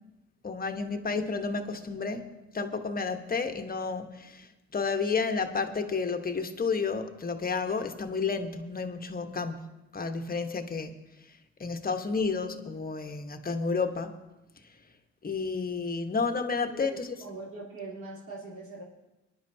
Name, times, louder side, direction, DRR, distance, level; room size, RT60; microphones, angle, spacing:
voice 1, 0.4-9.6 9.9-11.0 11.6-14.1 15.2-17.1, left 4 dB, 30° left, 6 dB, 1.2 m, -31 dB
voice 2, 16.7-18.8, right 3 dB, 80° right, -6 dB, 3.3 m, -42 dB
23.0 x 11.0 x 2.8 m, 0.99 s
cardioid pair, 90°, 30 cm